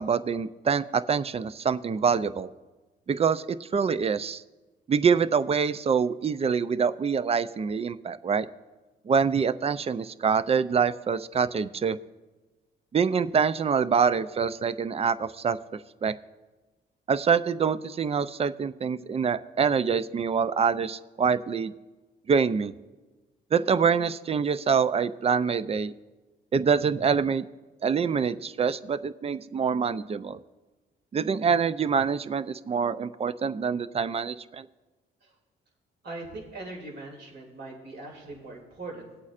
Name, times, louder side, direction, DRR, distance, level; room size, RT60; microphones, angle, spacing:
voice 1, 0.0-2.5 3.1-4.4 4.9-8.5 9.1-12.0 12.9-15.6 16.0-16.2 17.1-21.7 22.3-22.7 23.5-25.9 26.5-27.5 27.8-30.4 31.1-34.7, right 6 dB, 30° right, 15 dB, 0.4 m, -25 dB
voice 2, 36.0-39.1, right 2 dB, 60° right, -1 dB, 2.7 m, -40 dB
19.5 x 8.4 x 2.5 m, 1.2 s
cardioid pair, 90°, 20 cm